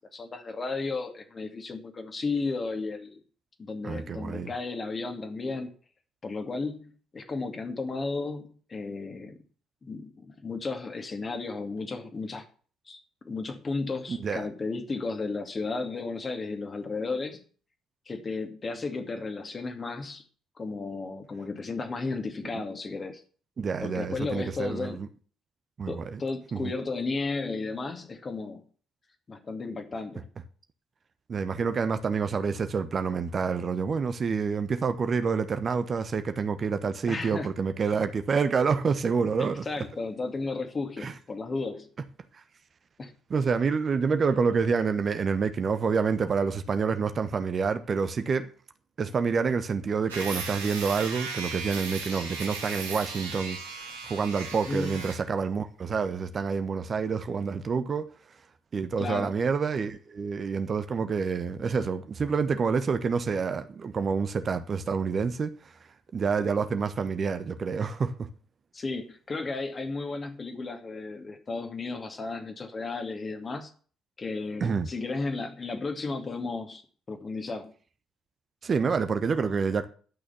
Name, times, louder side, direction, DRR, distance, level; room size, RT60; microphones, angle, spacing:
voice 1, 0.1-3.2 3.6-5.7 6.2-9.3 9.8-12.4 12.9-13.0 13.2-17.4 18.1-20.2 20.6-23.2 23.8-25.0 25.9-28.6 29.3-30.3 37.1-37.5 39.7-41.9 43.0-43.1 54.5-55.0 59.0-59.3 68.7-73.7 74.2-76.8 77.1-77.7, left 3 dB, 35° left, 2.5 m, -34 dB
voice 2, 3.8-4.5 14.1-14.5 22.4-22.6 23.6-25.1 25.8-26.2 26.5-26.7 31.3-39.7 41.0-41.1 42.3-42.4 43.3-48.5 49.0-58.1 58.7-68.3 74.6-74.9 78.6-79.9, right 5 dB, 40° right, 1.1 m, -28 dB
sound 1, 50.1-55.2, right 4 dB, 85° right, 2.4 m, -37 dB
11.5 x 6.3 x 7.2 m
hypercardioid pair, 50°, 0 cm